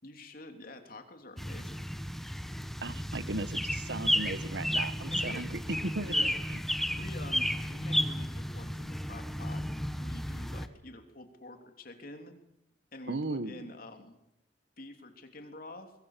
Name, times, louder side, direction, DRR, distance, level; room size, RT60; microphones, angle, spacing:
voice 1, 0.0-1.9 5.1-5.4 6.0-6.4 6.9-9.6 10.0-12.3 12.9-14.1 14.8-15.9, left 2 dB, 55° left, 5 dB, 3.3 m, -47 dB
sound 1, 1.4-10.7, equal, ahead, 1.1 m, -33 dB
voice 2, 2.8-6.2 6.5-6.6 13.1-13.7, right 2 dB, 70° right, 14 dB, 1.2 m, -36 dB
25.0 x 21.5 x 7.5 m, 0.84 s
head